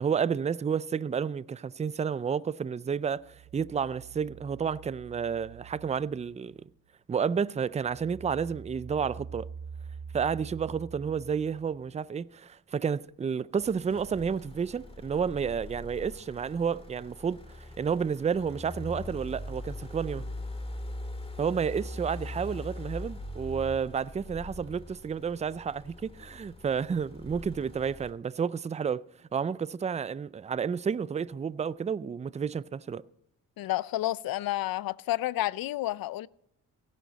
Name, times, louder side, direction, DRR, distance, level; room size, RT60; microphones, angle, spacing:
voice 1, 0.0-6.6 7.1-9.5 10.1-20.3 21.4-29.0 29.3-33.0, right 6 dB, 20° right, 0.4 m, -31 dB
sound 1, 3.1-7.0 7.3-11.9, right 6 dB, 75° right, 2.1 m, -46 dB
sound 2, 13.6-28.1, left 1 dB, 15° left, 2.1 m, -42 dB
voice 2, 33.6-36.3, left 15 dB, 80° left, 0.5 m, -30 dB
17.5 x 11.0 x 4.0 m
cardioid pair, 80°, 35 cm